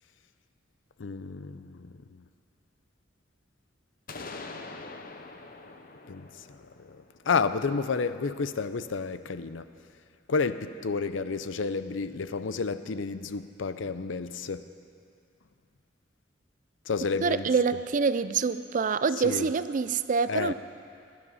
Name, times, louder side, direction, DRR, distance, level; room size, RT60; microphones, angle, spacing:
voice 1, 1.0-1.9 6.1-6.3 6.8-9.7 10.3-14.7 16.9-17.5 19.2-19.5 20.3-20.5, left 4 dB, 90° left, 12 dB, 0.6 m, -30 dB
sound 1, 4.1-7.9, left 3 dB, 50° left, 0.8 m, -44 dB
voice 2, 17.2-20.5, right 5 dB, 45° right, 13 dB, 0.4 m, -26 dB
17.0 x 12.5 x 5.6 m, 2.4 s
head